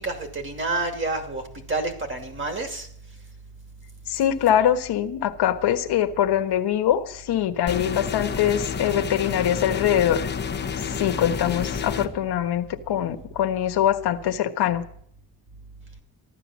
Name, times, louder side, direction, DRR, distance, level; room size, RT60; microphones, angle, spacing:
voice 1, 0.0-2.9, right 3 dB, 30° right, 6 dB, 2.5 m, -29 dB
voice 2, 4.1-10.3 11.0-14.9, left 10 dB, 85° left, 8 dB, 1.4 m, -23 dB
sound 1, 7.7-12.1, left 6 dB, 25° left, 1.1 m, -30 dB
15.0 x 12.0 x 7.3 m, 0.65 s
wide cardioid pair, 175°, 39 cm